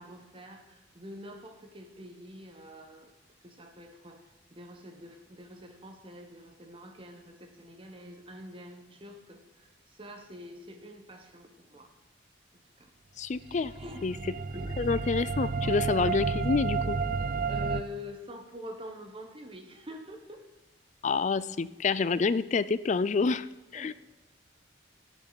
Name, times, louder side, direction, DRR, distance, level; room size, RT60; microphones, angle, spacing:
voice 1, 0.0-3.1 3.4-11.9 12.8-12.9 13.4-15.2 15.6-15.9 17.4-20.4 23.7-23.9, left 1 dB, 30° right, 5 dB, 1.1 m, -46 dB
voice 2, 13.2-13.7 14.0-14.1 14.8-17.0 21.0-23.5 23.7-23.9, left 4 dB, 40° left, 16 dB, 0.4 m, -28 dB
sound 1, 13.5-17.8, right 4 dB, 50° right, 0.4 m, -31 dB
16.5 x 7.4 x 4.0 m, 1.1 s
head